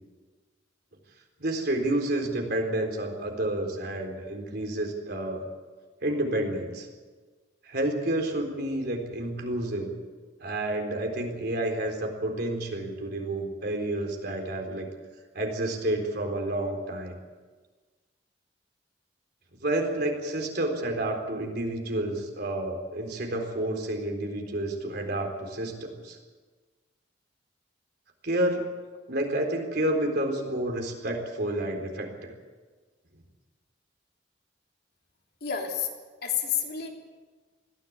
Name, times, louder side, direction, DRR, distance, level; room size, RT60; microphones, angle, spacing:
voice 1, 1.4-5.4 6.0-6.9 7.6-9.9 10.4-14.9 15.3-17.1 19.6-26.2 28.2-28.6 29.1-32.3, right 1 dB, 60° right, 3 dB, 3.9 m, -30 dB
voice 2, 35.4-35.9 36.2-36.9, left 8 dB, 60° left, 1 dB, 3.3 m, -29 dB
21.0 x 15.0 x 8.8 m, 1.4 s
head